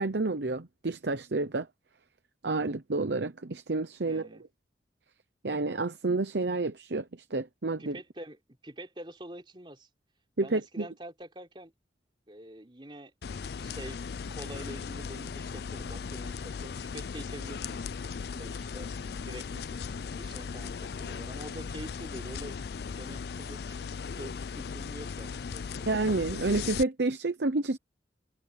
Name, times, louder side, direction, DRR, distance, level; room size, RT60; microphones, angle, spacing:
voice 1, 0.0-1.7 2.4-4.2 5.4-7.0 7.3-8.0 10.4-10.9 25.9-27.8, right 3 dB, 80° right, 0.9 m, -29 dB
voice 2, 4.1-4.4 7.8-9.9 10.4-11.7 12.3-17.8 18.2-19.8 20.1-22.6 23.0-23.9 24.2-25.9, right 1 dB, 30° right, 3.8 m, -46 dB
sound 1, 13.2-26.8, left 5 dB, 65° left, 0.4 m, -37 dB
head